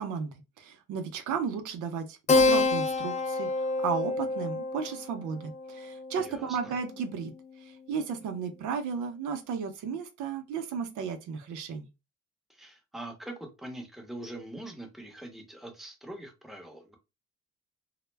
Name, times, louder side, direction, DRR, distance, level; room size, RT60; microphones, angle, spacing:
voice 1, 0.0-7.3 7.6-11.9, right 6 dB, 80° right, 0.6 m, -34 dB
Keyboard (musical), 2.3-7.3, left 3 dB, 25° left, 0.3 m, -28 dB
voice 2, 6.2-6.7 12.5-17.0, right 1 dB, ahead, 0.8 m, -43 dB
2.1 x 2.0 x 3.2 m
cardioid pair, 90°, 30 cm